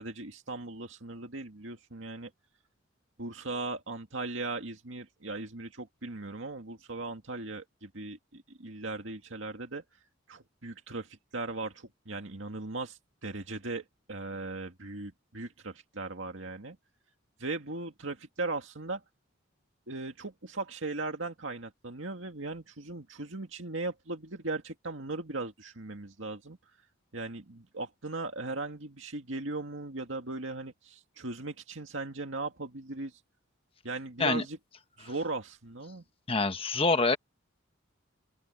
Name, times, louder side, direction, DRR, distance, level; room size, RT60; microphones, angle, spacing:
voice 1, 0.0-2.3 3.2-9.8 10.3-16.8 17.4-19.0 19.9-26.6 27.1-33.2 33.8-34.6 35.0-36.0, right 3 dB, 70° right, 2.1 m, -38 dB
voice 2, 36.3-37.2, left 3 dB, 30° left, 1.2 m, -26 dB
open air
head